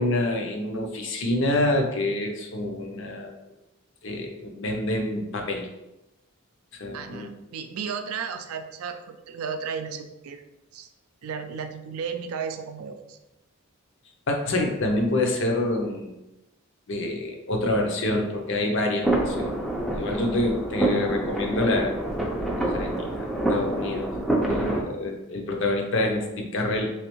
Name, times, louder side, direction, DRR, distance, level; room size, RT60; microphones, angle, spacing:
voice 1, 0.0-3.3 4.0-5.7 6.8-7.3 14.3-16.1 16.9-19.5 20.0-22.0 22.2-22.3 22.6-24.1 24.4-26.9, left 1 dB, 60° left, 2 dB, 0.6 m, -27 dB
voice 2, 6.9-10.4 10.7-10.9 11.2-13.2, right 6 dB, 85° right, 7 dB, 0.4 m, -34 dB
sound 1, 19.0-24.8, right 1 dB, ahead, 0.4 m, -27 dB
3.4 x 3.2 x 3.0 m, 0.95 s
head